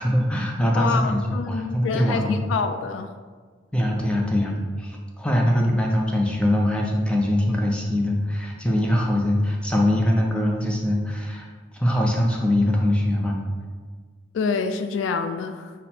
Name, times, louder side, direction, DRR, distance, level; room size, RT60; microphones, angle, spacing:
voice 1, 0.0-2.5 3.7-11.5 11.7-13.4, left 1 dB, 5° left, 0 dB, 0.5 m, -22 dB
voice 2, 0.7-3.1 14.3-15.7, left 5 dB, 90° left, 8 dB, 0.3 m, -27 dB
5.8 x 2.1 x 4.2 m, 1.5 s
head